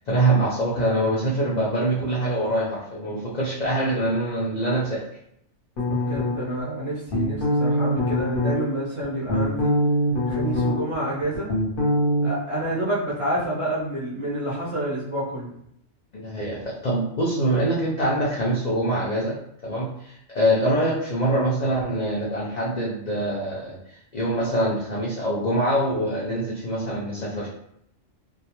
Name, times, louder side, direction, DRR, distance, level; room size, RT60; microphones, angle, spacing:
voice 1, 0.0-5.0 16.1-19.3 19.6-27.5, right 1 dB, 75° left, -6 dB, 0.4 m, -24 dB
sound 1, 5.8-6.6 7.1-8.5 9.0-11.0 11.2-12.3, left 1 dB, 50° left, 0.7 m, -23 dB
voice 2, 5.8-9.7 10.3-11.5 12.2-15.5, right 1 dB, 40° right, -9 dB, 0.5 m, -28 dB
2.3 x 2.2 x 2.9 m, 0.73 s
omnidirectional pair, 1.3 m